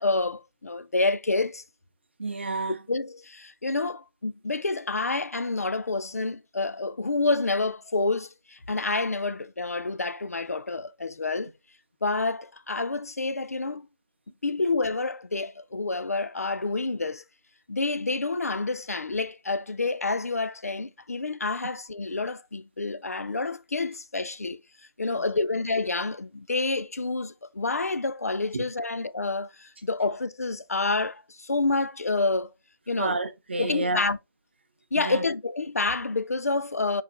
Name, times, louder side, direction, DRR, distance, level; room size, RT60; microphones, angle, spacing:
voice 1, 0.0-1.6 2.9-11.5 12.0-13.9 14.4-17.2 17.7-24.6 25.0-32.5 32.9-33.2 33.6-34.2 34.9-37.0, left 3 dB, 40° left, 0.4 m, -28 dB
voice 2, 2.2-2.9 25.1-25.3 28.5-28.6 33.0-34.0 35.0-35.2, right 2 dB, 30° right, 0.7 m, -30 dB
5.9 x 3.9 x 4.1 m
figure-of-eight pair, 170°, 12 cm